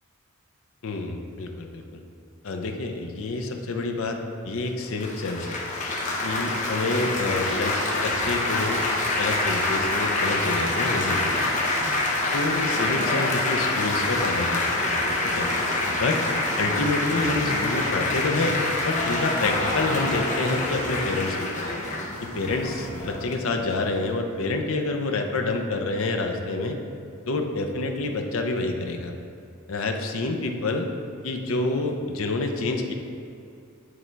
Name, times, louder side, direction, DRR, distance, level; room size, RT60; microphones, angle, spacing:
voice 1, 0.8-2.0 2.4-4.2 4.4-5.6 6.2-7.8 8.0-8.8 9.2-11.6 12.3-14.8 15.4-15.5 15.8-16.2 16.6-18.6 18.8-21.7 22.2-26.8 27.3-29.1 29.7-30.9 31.2-32.9, left 3 dB, 65° left, 4 dB, 0.6 m, -28 dB
Laughter / Applause / Chatter, 5.0-24.1, left 2 dB, 35° left, 0.8 m, -26 dB
9.6 x 3.3 x 4.6 m, 2.5 s
head